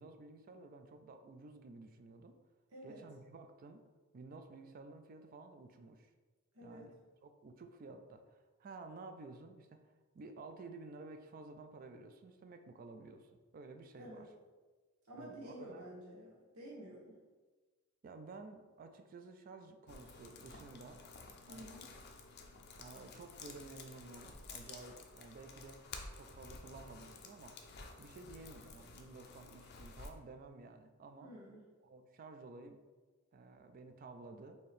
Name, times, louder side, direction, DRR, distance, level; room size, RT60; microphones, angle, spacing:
voice 1, 0.0-2.4 2.8-3.8 4.1-6.1 6.6-7.0 7.2-9.8 10.1-14.3 15.2-15.9 18.0-21.0 21.5-21.7 22.8-25.8 26.1-27.6 28.0-31.3 31.8-32.8 33.3-34.6, right 3 dB, 40° right, 7 dB, 0.3 m, -53 dB
voice 2, 2.7-3.0 6.5-6.9 13.9-14.3 15.0-17.2 21.5-21.9 31.2-31.6, right 1 dB, 85° right, -4 dB, 1.0 m, -51 dB
sound 1, 19.9-30.1, left 4 dB, 45° left, 0.4 m, -52 dB
4.2 x 2.7 x 3.3 m, 1.3 s
head